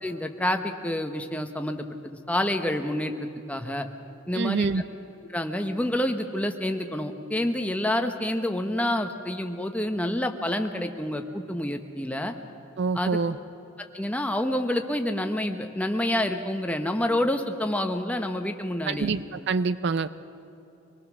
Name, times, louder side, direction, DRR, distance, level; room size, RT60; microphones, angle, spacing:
voice 1, 0.0-3.9 4.3-4.7 5.3-12.3 12.9-13.2 13.8-19.1, left 1 dB, 5° left, 5 dB, 1.0 m, -28 dB
voice 2, 4.3-4.8 12.8-13.4 18.9-20.1, right 4 dB, 55° right, 14 dB, 0.5 m, -26 dB
25.0 x 19.5 x 6.2 m, 2.9 s
head